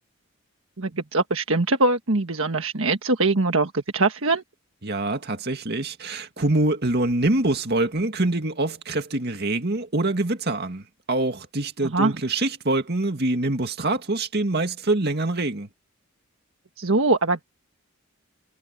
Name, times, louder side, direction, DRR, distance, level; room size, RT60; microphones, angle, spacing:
voice 1, 0.8-4.4 11.8-12.2 16.8-17.4, right 3 dB, 65° right, 1.5 m, -22 dB
voice 2, 4.8-15.7, right 2 dB, 50° right, 2.2 m, -25 dB
head